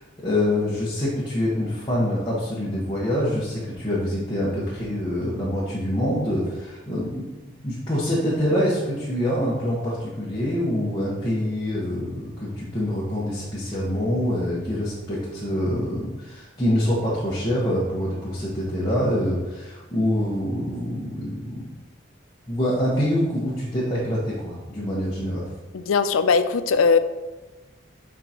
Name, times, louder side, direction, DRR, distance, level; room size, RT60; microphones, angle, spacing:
voice 1, 0.0-7.3 7.6-21.7 22.5-25.5, left 1 dB, 20° left, -9 dB, 1.3 m, -25 dB
voice 2, 25.7-27.0, left 5 dB, 80° left, 12 dB, 0.4 m, -19 dB
8.0 x 4.8 x 3.0 m, 1.2 s
head